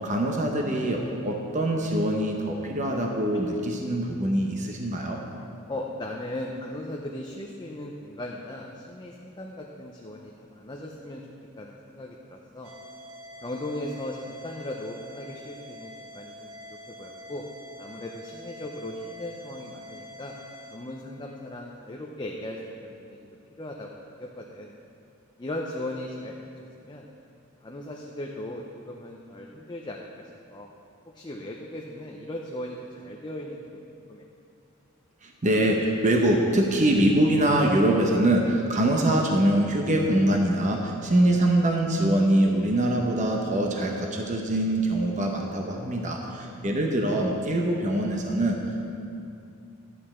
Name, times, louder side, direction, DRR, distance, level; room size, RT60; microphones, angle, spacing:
voice 1, 0.0-5.2 35.2-48.8, right 1 dB, 35° right, 1 dB, 0.8 m, -24 dB
voice 2, 5.7-11.3 11.6-12.7 13.4-16.5 16.9-17.4 17.8-20.3 20.7-23.2 23.6-24.7 25.4-27.1 27.6-30.1 30.5-30.7 31.1-33.8 34.1-34.2 46.2-46.4, left 1 dB, 20° left, -1 dB, 0.6 m, -37 dB
sound 1, 12.6-20.8, equal, 75° right, 0.9 m, -45 dB
11.5 x 8.4 x 4.4 m, 2.6 s
head